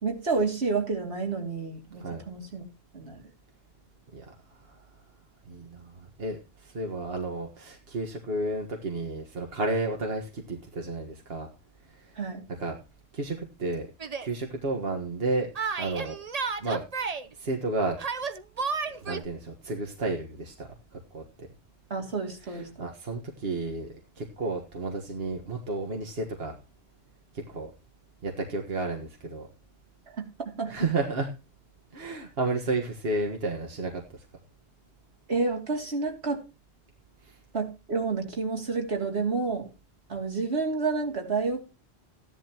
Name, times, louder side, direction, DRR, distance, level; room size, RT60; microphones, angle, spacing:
voice 1, 0.0-2.6 2.9-3.2 12.2-12.4 21.9-22.7 30.6-30.7 35.3-36.4 37.5-39.7 40.1-41.6, right 4 dB, 85° right, 0 dB, 3.1 m, -29 dB
voice 2, 4.1-4.9 5.5-11.5 11.9-12.2 12.6-12.8 13.1-13.9 14.2-15.5 15.8-16.2 16.6-16.8 17.3-18.0 18.9-21.5 22.4-26.6 27.3-27.7 28.2-29.5 30.7-31.3 31.9-34.3 37.2-37.4, right 2 dB, 65° right, 2 dB, 1.8 m, -32 dB
Yell, 14.0-14.3 15.6-17.3 18.0-19.2, right 5 dB, 40° right, 0.9 m, -32 dB
15.5 x 11.0 x 3.0 m, 0.28 s
omnidirectional pair, 1.1 m